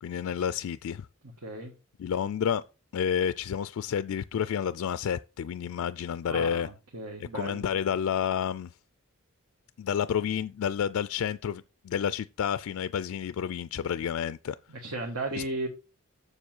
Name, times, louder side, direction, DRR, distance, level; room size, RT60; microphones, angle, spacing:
voice 1, 0.0-1.1 2.0-2.6 2.9-6.7 7.2-8.7 9.8-14.6 15.4-15.5, left 8 dB, 70° left, 0.3 m, -30 dB
voice 2, 1.4-1.7 6.3-7.7 14.7-15.7, right 2 dB, 80° right, 1.5 m, -35 dB
7.1 x 6.8 x 4.4 m
head